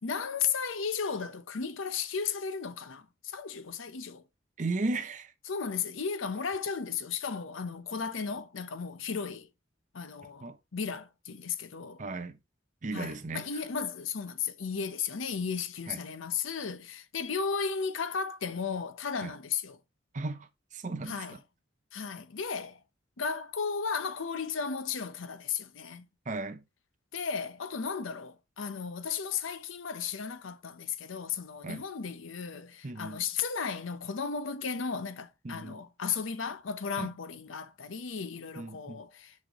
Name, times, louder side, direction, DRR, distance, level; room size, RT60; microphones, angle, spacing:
voice 1, 0.0-4.2 5.5-9.5 9.9-10.4 10.7-12.0 12.9-19.8 21.1-21.4 21.9-22.8 23.2-26.1 27.1-39.3, left 6 dB, 85° left, 0.7 m, -35 dB
voice 2, 4.6-5.3 10.4-10.6 12.0-12.4 12.8-13.4 15.9-16.0 19.2-19.3 20.1-21.2 26.3-26.6 31.6-31.8 32.8-33.2 35.4-35.8 37.0-37.1 38.6-39.0, right 3 dB, 40° right, 0.6 m, -35 dB
6.3 x 5.3 x 2.9 m
head